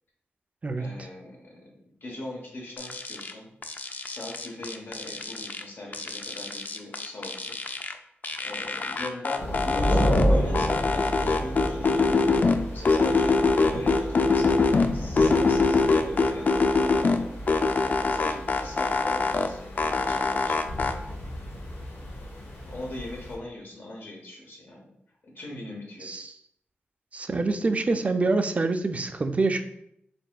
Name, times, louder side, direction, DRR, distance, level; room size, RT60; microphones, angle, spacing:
voice 1, 0.7-3.5 4.0-7.6 8.4-13.4 13.7-17.3 18.1-20.7 22.6-24.9 25.2-26.1, left 1 dB, 60° left, -1 dB, 1.0 m, -40 dB
sound 1, 2.8-3.3 3.6-5.6 5.9-7.9 8.2-10.3 10.5-12.6 12.9-14.9 15.2-17.2 17.5-19.5 19.8-20.9, left 3 dB, 45° left, 0.3 m, -24 dB
sound 2, 9.4-23.3, equal, 85° left, 0.9 m, -31 dB
voice 2, 26.0-26.3 27.1-29.6, right 3 dB, 35° right, 7 dB, 0.4 m, -26 dB
4.1 x 3.5 x 2.3 m, 0.72 s
wide cardioid pair, 85°, 4 cm